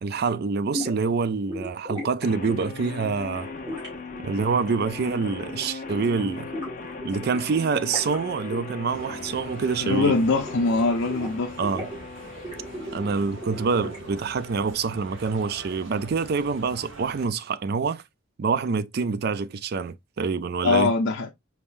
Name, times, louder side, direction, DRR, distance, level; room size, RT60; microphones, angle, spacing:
voice 1, 0.0-3.5 4.2-6.5 7.0-10.2 11.6-11.9 12.9-18.0 18.4-20.9, right 5 dB, 50° right, 0.4 m, -26 dB
sound 1, 0.7-1.0 1.5-2.1 2.5-2.9 3.7-5.1 5.4-5.6 5.9-7.4 7.7-8.2 8.5-8.6 8.9-9.4 9.6-10.8 11.1-12.0 12.4-14.2, equal, 20° right, 2.6 m, -36 dB
sound 2, 2.2-15.2, left 3 dB, 40° left, 0.8 m, -39 dB
sound 3, 8.9-17.3, right 2 dB, 70° right, 1.3 m, -43 dB
voice 2, 9.8-11.6 20.6-21.3, left 3 dB, 75° left, 0.6 m, -22 dB
4.7 x 3.6 x 2.5 m
head